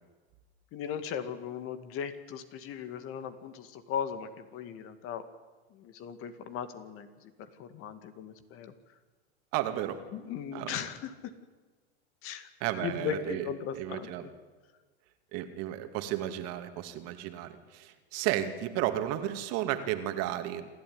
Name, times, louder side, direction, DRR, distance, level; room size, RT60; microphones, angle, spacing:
voice 1, 0.7-5.3 5.7-9.0 10.1-11.3 12.2-12.5 12.8-14.3, left 8 dB, 40° left, 10 dB, 2.3 m, -38 dB
voice 2, 9.5-10.0 10.5-10.7 12.6-13.4 13.7-14.2 15.3-20.7, right 12 dB, 50° right, 8 dB, 2.5 m, -33 dB
27.0 x 13.5 x 9.7 m, 1.3 s
hypercardioid pair, 120°, 33 cm